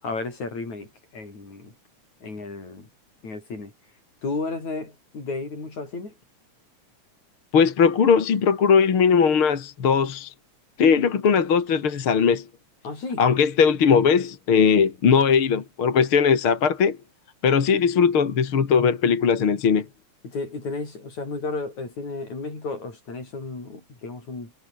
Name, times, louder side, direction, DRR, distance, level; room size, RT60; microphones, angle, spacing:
voice 1, 0.0-1.7 2.2-2.9 3.2-3.7 4.2-6.2 12.8-13.2 20.2-24.5, left 3 dB, 70° left, 8.9 m, -33 dB
voice 2, 7.5-10.3 10.8-12.4 13.2-17.0 17.4-19.9, left 6 dB, 45° left, 2.9 m, -19 dB
omnidirectional pair, 3.3 m